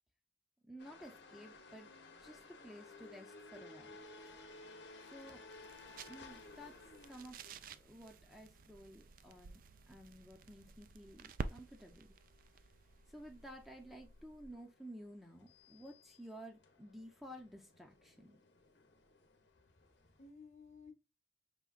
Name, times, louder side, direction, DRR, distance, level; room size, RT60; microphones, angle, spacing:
voice 1, 0.6-1.9 2.2-4.0 5.1-5.5 6.0-6.8 7.1-7.4 7.7-12.1 13.1-18.4, equal, ahead, 0.6 m, -53 dB
sound 1, 0.8-20.3, left 3 dB, 90° left, 0.9 m, -59 dB
sound 2, 4.0-14.7, right 4 dB, 50° right, 0.3 m, -51 dB
voice 2, 19.5-20.9, left 4 dB, 40° left, 0.9 m, -58 dB
5.1 x 3.3 x 2.4 m
head